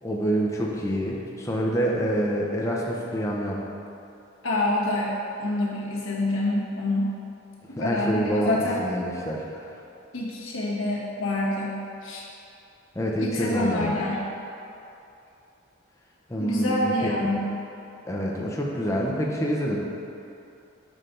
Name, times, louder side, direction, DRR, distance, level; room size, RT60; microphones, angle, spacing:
voice 1, 0.0-3.6 7.8-9.6 12.9-14.0 16.3-17.3 18.0-19.8, equal, 15° left, -3 dB, 0.7 m, -27 dB
voice 2, 4.4-7.2 7.7-8.8 10.1-12.2 13.2-14.3 16.4-17.4, left 1 dB, 80° left, -5 dB, 1.3 m, -27 dB
6.6 x 5.1 x 3.9 m, 2.7 s
head